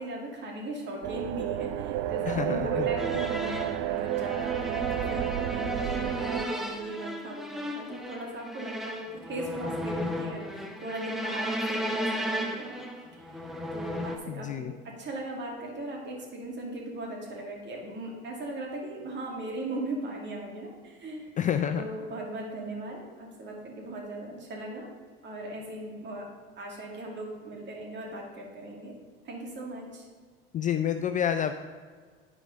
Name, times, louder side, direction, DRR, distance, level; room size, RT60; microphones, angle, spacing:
voice 1, 0.0-12.8 13.1-13.4 13.7-14.7 15.0-21.3 21.7-24.9 25.2-26.3 26.6-28.9 29.2-30.1, right 1 dB, 40° right, -1 dB, 2.4 m, -38 dB
sound 1, 1.0-6.5, right 13 dB, 55° right, 0.5 m, -31 dB
voice 2, 2.3-2.9 14.3-14.7 21.4-21.9 30.5-31.5, left 9 dB, 25° left, 8 dB, 0.4 m, -28 dB
sound 2, 3.0-14.2, equal, ahead, 0.8 m, -35 dB
9.1 x 4.7 x 5.1 m, 1.5 s
hypercardioid pair, 85°, 29 cm